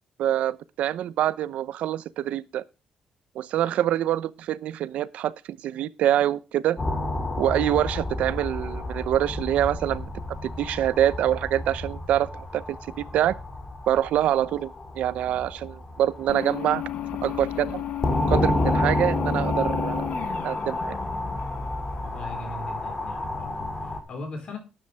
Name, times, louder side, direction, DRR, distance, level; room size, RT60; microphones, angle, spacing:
voice 1, 0.2-2.6 3.3-6.8 7.4-10.1 10.4-13.3 13.9-14.7 15.0-16.8 17.2-17.8 18.3-20.1 20.4-21.0, right 11 dB, 80° right, 0.7 m, -25 dB
sound 1, 6.8-24.0, left 1 dB, 25° left, 2.6 m, -30 dB
sound 2, 16.3-22.7, left 12 dB, 75° left, 0.8 m, -34 dB
voice 2, 22.0-24.6, left 2 dB, 50° left, 4.5 m, -39 dB
12.5 x 10.0 x 3.4 m
cardioid pair, 155°, 2 cm